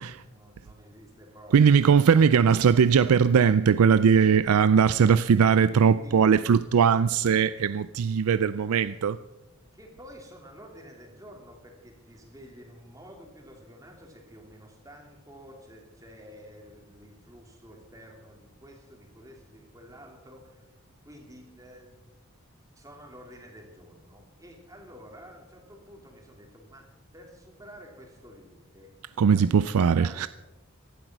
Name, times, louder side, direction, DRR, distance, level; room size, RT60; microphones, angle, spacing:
voice 1, 0.0-1.8 6.0-6.2 9.4-22.2 22.8-26.9 27.1-28.9 29.2-29.6 29.9-30.3, equal, 15° right, 2.9 m, -50 dB
voice 2, 1.5-9.2 29.2-30.3, right 6 dB, 80° right, 0.4 m, -20 dB
17.0 x 12.0 x 6.0 m
head